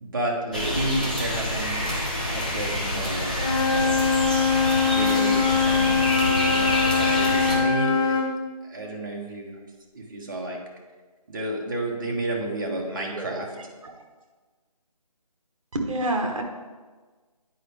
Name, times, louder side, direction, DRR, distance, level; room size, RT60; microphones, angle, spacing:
voice 1, 0.0-1.8 2.3-3.9 4.9-8.2 8.6-9.6 9.9-10.6 11.3-13.5, right 1 dB, 30° right, -1 dB, 1.1 m, -31 dB
sound 1, 0.5-7.6, left 1 dB, 15° left, 0.4 m, -27 dB
Wind instrument woodwind instrument, 3.3-8.3, left 5 dB, 35° left, 1.6 m, -22 dB
voice 2, 13.1-13.9 15.7-16.4, right 1 dB, 55° right, 2 dB, 1.3 m, -29 dB
9.2 x 4.8 x 3.3 m, 1.3 s
figure-of-eight pair, 165°, 20 cm